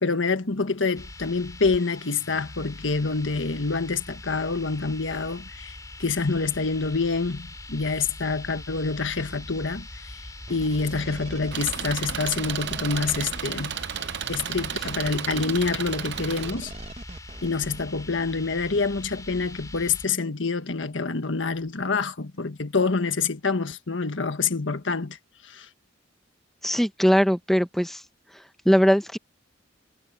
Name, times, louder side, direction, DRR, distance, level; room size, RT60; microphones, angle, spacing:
voice 1, 0.0-10.2 10.5-13.7 14.3-16.7 17.4-25.2 25.4-25.7, left 4 dB, 85° left, 1.5 m, -27 dB
sound 1, 0.9-20.1, left 2 dB, 20° left, 4.0 m, -42 dB
sound 2, 10.5-17.8, right 2 dB, 35° right, 1.1 m, -42 dB
Engine, 11.5-16.5, right 9 dB, 65° right, 0.7 m, -33 dB
voice 2, 26.6-28.0 28.6-29.2, equal, ahead, 0.9 m, -20 dB
head